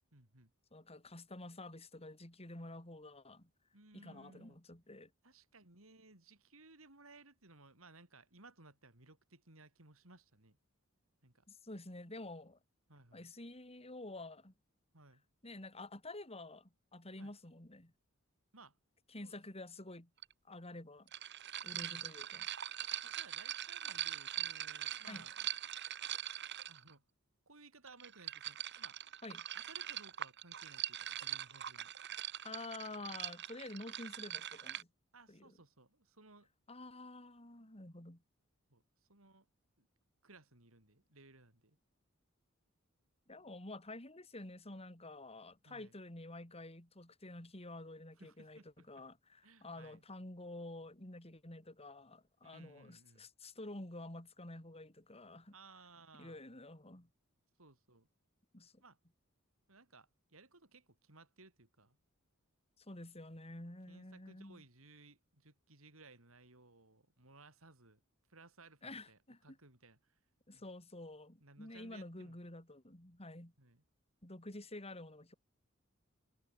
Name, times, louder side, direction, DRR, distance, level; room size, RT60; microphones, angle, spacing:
voice 1, 0.1-0.5 3.7-4.6 5.2-10.6 11.2-11.4 12.9-13.3 14.9-15.2 17.2-17.3 18.5-18.8 19.2-19.3 21.8-22.0 23.0-25.5 26.7-27.0 27.5-29.0 29.5-31.9 35.1-36.5 38.7-38.8 39.1-39.5 39.8-39.9 40.2-41.8 45.7-46.0 48.2-49.0 49.4-50.0 52.4-53.3 55.5-56.4 57.6-58.1 58.8-59.0 59.7-62.0 63.9-68.0 68.3-70.2 70.5-70.7 71.4-72.4 73.6-73.8, right 3 dB, 80° right, 5.6 m, -61 dB
voice 2, 0.7-3.5 3.9-5.1 11.5-12.6 13.1-14.5 15.4-17.9 19.1-20.1 20.5-21.1 21.6-22.5 25.1-25.3 29.2-29.4 32.4-34.9 35.3-35.6 36.7-38.2 43.3-55.5 56.1-57.1 58.5-58.7 62.8-64.6 68.8-69.6 70.5-73.5 74.2-75.3, left 2 dB, 30° left, 3.8 m, -49 dB
sound 1, 20.2-20.3 21.1-26.9 27.9-34.8, right 11 dB, 55° right, 2.0 m, -42 dB
head